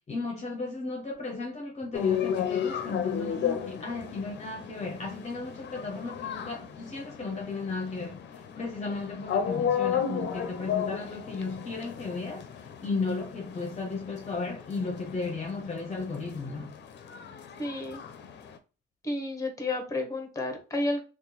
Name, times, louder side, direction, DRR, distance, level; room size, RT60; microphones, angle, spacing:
voice 1, 0.1-12.5 12.8-16.7, left 3 dB, 35° left, 0.8 m, -35 dB
sound 1, 1.9-18.6, left 8 dB, 60° left, 0.6 m, -34 dB
voice 2, 17.6-18.0 19.0-21.0, left 2 dB, 15° left, 1.1 m, -31 dB
2.9 x 2.4 x 3.8 m
cardioid pair, 90°, 20 cm